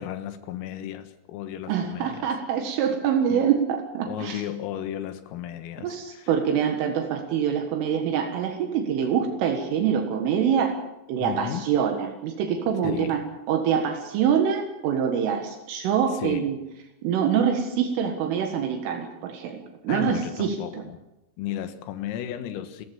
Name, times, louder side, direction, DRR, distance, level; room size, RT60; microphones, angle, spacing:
voice 1, 0.0-2.3 3.3-3.5 4.1-6.3 11.2-11.7 12.8-13.2 16.1-16.5 19.9-21.0 21.4-22.9, left 10 dB, 85° left, 4.2 m, -34 dB
voice 2, 1.7-4.4 5.8-10.7 11.1-13.2 13.5-16.6 17.0-19.6 19.8-20.8, right 8 dB, 75° right, 4.1 m, -25 dB
29.5 x 14.5 x 7.2 m
omnidirectional pair, 5.9 m